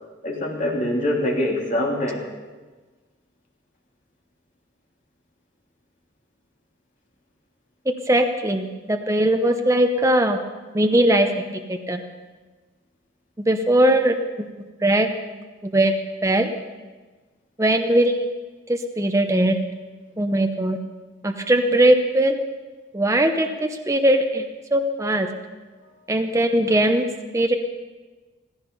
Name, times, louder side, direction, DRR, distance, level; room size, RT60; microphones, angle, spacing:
voice 1, 0.2-2.3, left 1 dB, 40° left, -2 dB, 3.1 m, -24 dB
voice 2, 8.1-10.4 10.7-11.4 11.7-12.0 13.5-14.5 14.8-15.1 15.6-15.9 16.2-16.5 17.6-18.3 18.7-19.6 20.2-20.8 21.2-22.4 22.9-25.3 26.1-27.0 27.3-27.5, right 1 dB, 15° right, 5 dB, 0.7 m, -20 dB
16.0 x 15.5 x 5.5 m, 1.3 s
head